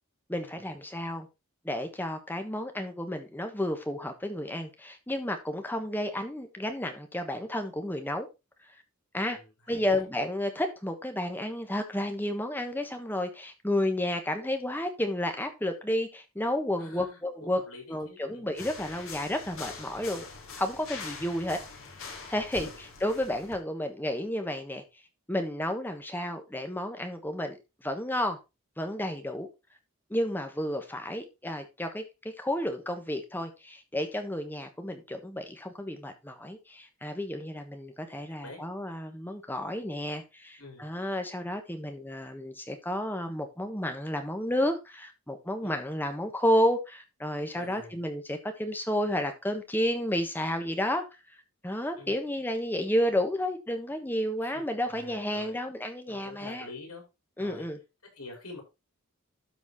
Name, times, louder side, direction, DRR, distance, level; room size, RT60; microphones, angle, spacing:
voice 1, 0.3-1.3 1.6-8.3 9.1-9.4 9.7-17.6 17.9-20.2 20.6-21.6 22.3-24.8 25.3-28.4 28.8-29.5 30.1-32.0 32.4-51.0 51.6-56.7 57.4-57.8, left 1 dB, 10° left, 1.2 m, -31 dB
voice 2, 9.3-10.0 16.8-18.5 22.6-22.8 38.1-38.6 40.6-40.9 45.6-45.7 47.5-48.0 52.0-52.2 54.4-54.6 54.9-55.6 56.1-57.0 57.4-57.6 58.1-58.6, left 2 dB, 80° left, 4.9 m, -47 dB
sound 1, 18.5-23.6, left 4 dB, 60° left, 2.6 m, -43 dB
12.5 x 4.2 x 4.1 m
head